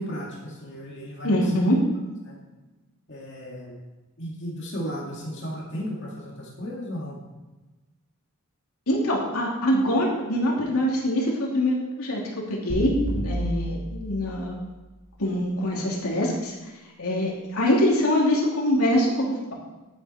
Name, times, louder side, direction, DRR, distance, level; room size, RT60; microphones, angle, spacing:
voice 1, 0.0-1.4 2.2-2.4 3.1-3.8 4.2-7.2, equal, 55° left, -3 dB, 2.2 m, -34 dB
voice 2, 1.2-1.8 8.9-12.2 12.5-14.6 15.2-16.5 17.0-19.5, left 1 dB, 90° left, -3 dB, 2.9 m, -24 dB
sound 1, 12.7-14.8, right 1 dB, 65° right, 3.7 m, -31 dB
11.0 x 9.4 x 4.4 m, 1.2 s
head